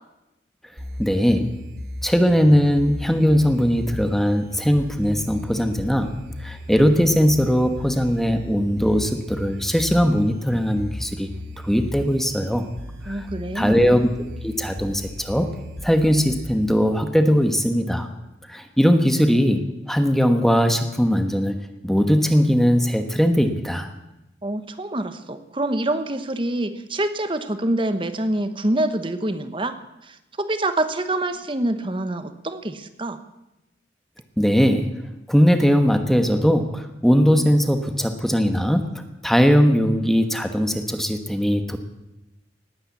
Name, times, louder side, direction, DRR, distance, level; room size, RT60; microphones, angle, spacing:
sound 1, 0.8-16.8, left 1 dB, 60° right, 3.2 m, -37 dB
voice 1, 1.0-1.5 2.0-6.1 6.4-11.3 11.6-12.6 13.0-13.3 13.5-14.0 14.4-15.5 15.8-18.1 18.5-21.5 21.8-23.9 34.4-34.9 35.3-41.8, equal, ahead, 7 dB, 1.2 m, -19 dB
voice 2, 13.1-13.8 24.4-29.8 30.0-33.2, right 1 dB, 30° right, 10 dB, 1.1 m, -26 dB
19.0 x 9.0 x 8.4 m, 0.96 s
head